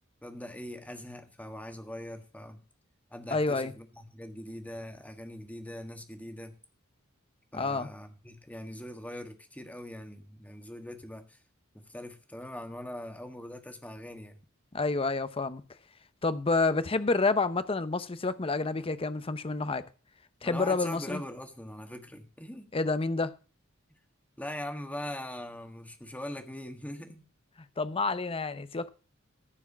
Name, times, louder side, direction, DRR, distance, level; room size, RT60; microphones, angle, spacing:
voice 1, 0.2-2.6 3.1-6.5 7.5-11.4 11.7-14.4 20.4-22.7 24.4-27.2, left 1 dB, 5° left, 1.5 m, -41 dB
voice 2, 3.3-3.7 7.5-7.9 14.7-15.6 16.2-19.8 20.4-21.2 22.7-23.3 27.8-28.9, left 3 dB, 25° left, 0.7 m, -29 dB
14.5 x 4.8 x 7.2 m
head